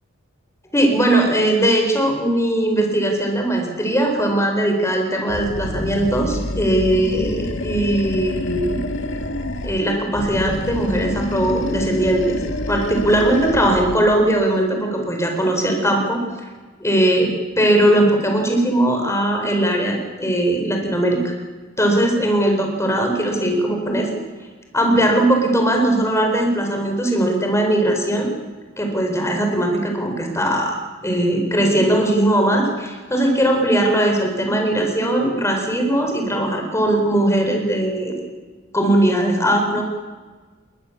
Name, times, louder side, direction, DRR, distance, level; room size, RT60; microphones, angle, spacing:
voice 1, 0.7-8.8 9.6-12.4 12.7-16.2 16.8-21.3 21.8-24.1 24.7-28.3 28.8-38.2 38.7-39.8, right 1 dB, 15° left, 3 dB, 4.2 m, -19 dB
Animal, 5.3-9.8 10.1-14.0, left 1 dB, 60° left, 1.9 m, -27 dB
21.0 x 20.0 x 7.1 m, 1.4 s
head